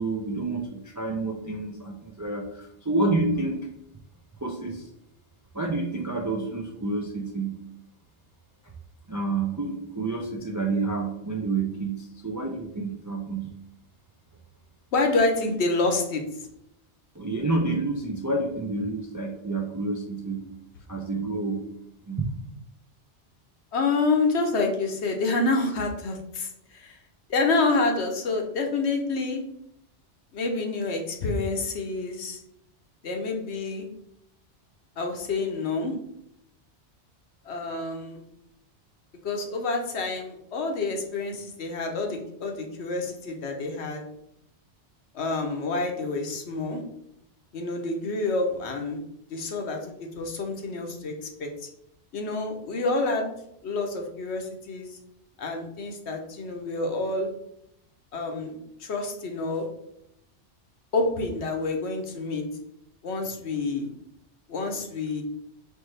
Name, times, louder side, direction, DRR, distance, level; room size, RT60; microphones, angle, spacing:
voice 1, 0.0-3.6 4.4-4.9 5.5-7.6 9.1-13.5 17.1-20.4 20.9-21.6 22.1-22.2, right 3 dB, 30° right, 0 dB, 0.3 m, -29 dB
voice 2, 14.9-16.2 23.7-27.0 27.3-29.4 30.3-32.4 33.0-33.9 35.0-35.9 37.4-38.2 39.2-44.0 45.1-46.8 47.5-49.0 49.3-51.7 52.1-53.3 53.6-55.0 55.4-57.3 58.1-59.7 60.9-62.5 63.0-63.9 64.5-65.2, left 3 dB, 70° left, 3 dB, 1.1 m, -28 dB
4.5 x 3.4 x 3.2 m, 0.76 s
omnidirectional pair, 1.2 m